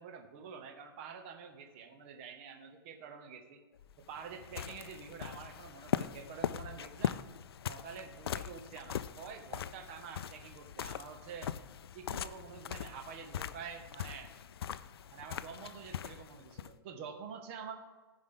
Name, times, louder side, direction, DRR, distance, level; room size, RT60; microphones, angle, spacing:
voice 1, 0.0-3.6 4.0-7.2 7.7-11.5 11.9-14.3 15.1-17.7, right 6 dB, 30° right, 4 dB, 0.9 m, -47 dB
sound 1, 3.8-16.8, left 9 dB, 70° left, 0.4 m, -41 dB
13.5 x 5.3 x 3.8 m, 1.3 s
hypercardioid pair, 165°, 13 cm